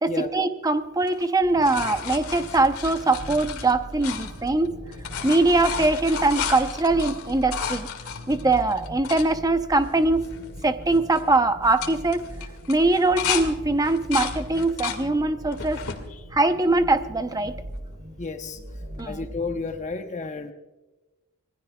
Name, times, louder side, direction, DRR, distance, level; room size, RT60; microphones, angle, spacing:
voice 1, 0.0-4.8 5.2-7.9 8.3-10.3 10.6-12.3 12.7-15.8 16.3-17.5 19.0-19.3, right 2 dB, 15° right, 8 dB, 0.7 m, -22 dB
sound 1, 1.0-4.7 4.9-9.3 9.9-10.0 10.2-10.6 10.9-11.2 11.6-13.5 13.8-15.0 15.5-16.0 16.6-17.4 19.0-19.1, left 8 dB, 90° left, 2.0 m, -33 dB
sound 2, 1.4-19.9, equal, 75° right, 3.7 m, -40 dB
voice 2, 18.2-18.6 19.1-20.5, left 4 dB, 35° left, 6 dB, 0.8 m, -32 dB
26.0 x 20.0 x 2.3 m, 1.1 s
head